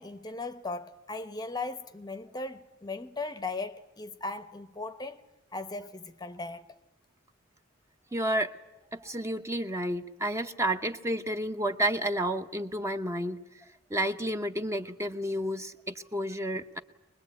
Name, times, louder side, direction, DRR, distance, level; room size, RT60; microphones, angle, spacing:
voice 1, 0.0-5.2 5.5-6.8, left 3 dB, 20° left, 0.8 m, -38 dB
voice 2, 8.1-8.5 8.9-13.6 13.9-16.8, right 1 dB, 15° right, 0.8 m, -31 dB
23.5 x 21.0 x 8.3 m
head